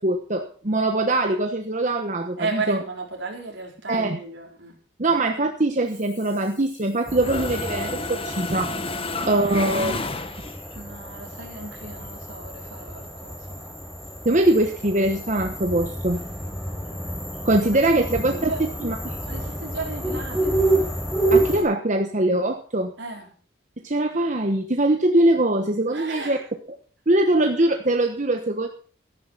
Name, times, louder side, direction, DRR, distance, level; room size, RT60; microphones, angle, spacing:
voice 1, 0.0-2.8 3.9-4.2 5.0-8.7 9.3-10.0 14.2-16.2 17.4-19.1 21.3-22.9 23.8-26.4 27.1-28.7, right 1 dB, 40° right, 5 dB, 1.1 m, -22 dB
voice 2, 2.4-4.8 9.0-9.9 10.7-13.7 14.0-14.1 17.6-18.6 19.3-21.1 23.0-23.3 25.9-26.5, right 3 dB, 70° right, 0 dB, 4.5 m, -35 dB
Mechanisms, 6.0-6.9 7.2-10.7, left 3 dB, 30° left, 1.2 m, -31 dB
sound 1, 7.1-21.6, right 2 dB, ahead, 5.0 m, -29 dB
13.5 x 11.5 x 5.7 m, 0.43 s
head